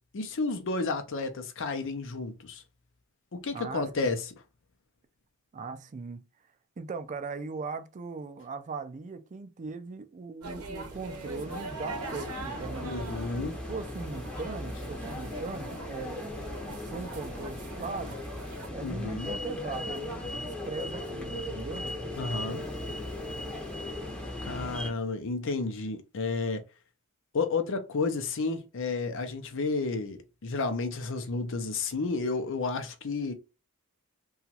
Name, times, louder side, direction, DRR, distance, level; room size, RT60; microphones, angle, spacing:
voice 1, 0.1-2.6 3.3-4.3 12.8-13.5 18.8-19.3 22.2-22.6 24.4-26.6 27.3-33.3, left 3 dB, 60° left, 0.6 m, -31 dB
voice 2, 3.5-4.2 5.5-6.2 6.8-12.9 13.4-18.2 18.7-21.9 22.4-22.7, right 4 dB, 35° right, 0.4 m, -39 dB
sound 1, 10.4-18.7, right 2 dB, 80° right, 0.7 m, -42 dB
sound 2, 10.9-24.9, left 1 dB, 5° left, 0.7 m, -38 dB
2.9 x 2.3 x 2.8 m
head